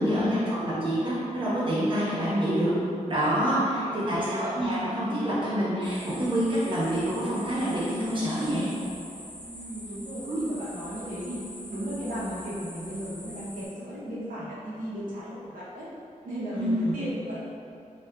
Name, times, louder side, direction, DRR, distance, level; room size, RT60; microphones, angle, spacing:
voice 1, 0.0-2.7 3.1-8.7 10.2-10.4 16.5-16.9, equal, 40° right, -10 dB, 1.0 m, -27 dB
voice 2, 3.5-4.2 9.3-11.4 11.7-15.9 16.2-17.4, equal, 85° right, -10 dB, 0.7 m, -36 dB
sound 1, 5.8-13.7, equal, 10° left, 0.9 m, -44 dB
3.4 x 2.4 x 2.3 m, 2.5 s
wide cardioid pair, 140°, 13 cm